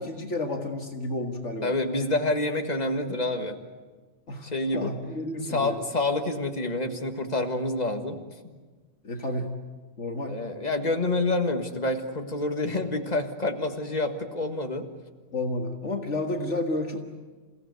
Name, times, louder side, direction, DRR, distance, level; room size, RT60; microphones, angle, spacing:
voice 1, 0.0-1.8 4.3-5.8 9.0-9.5 10.0-10.4 15.3-17.0, left 1 dB, 60° left, 3 dB, 1.9 m, -31 dB
voice 2, 1.6-3.6 4.4-4.9 5.5-8.2 10.3-14.9, left 2 dB, 30° left, 5 dB, 1.8 m, -27 dB
29.0 x 16.5 x 9.5 m, 1.4 s
omnidirectional pair, 1.4 m